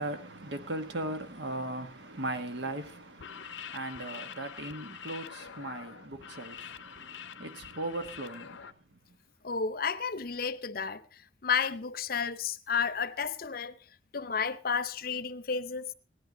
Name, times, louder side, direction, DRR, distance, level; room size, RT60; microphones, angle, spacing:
voice 1, 0.0-9.0, right 1 dB, 75° right, 1.5 m, -38 dB
sound 1, 3.1-8.7, left 8 dB, 90° left, 0.7 m, -45 dB
voice 2, 9.4-11.0 11.4-13.8 14.1-15.9, left 6 dB, 50° left, 0.7 m, -32 dB
18.0 x 11.5 x 3.8 m
head